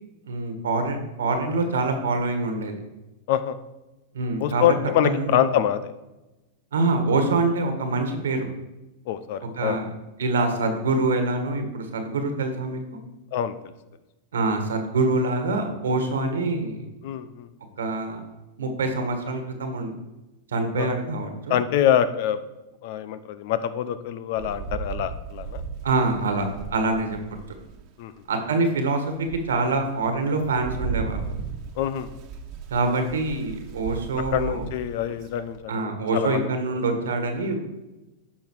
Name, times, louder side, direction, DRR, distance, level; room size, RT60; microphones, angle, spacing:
voice 1, 0.2-2.7 4.1-4.7 5.0-5.3 6.7-8.5 9.6-9.9 10.2-12.8 14.3-16.9 17.8-18.2 18.6-19.9 20.5-21.6 25.8-27.2 28.3-31.2 32.7-34.7 35.7-37.6, right 3 dB, 90° right, 6 dB, 1.6 m, -25 dB
voice 2, 4.4-5.9 9.1-9.8 13.3-13.6 17.0-17.5 20.8-21.0 21.5-22.4 22.8-25.6 28.0-28.1 31.8-32.1 34.3-36.5, left 10 dB, 60° left, 13 dB, 0.7 m, -25 dB
Rain, 24.3-27.9 28.4-28.5 29.0-35.6, right 5 dB, 50° right, 1.2 m, -36 dB
10.5 x 5.6 x 4.7 m, 1.0 s
hypercardioid pair, 115°, 0 cm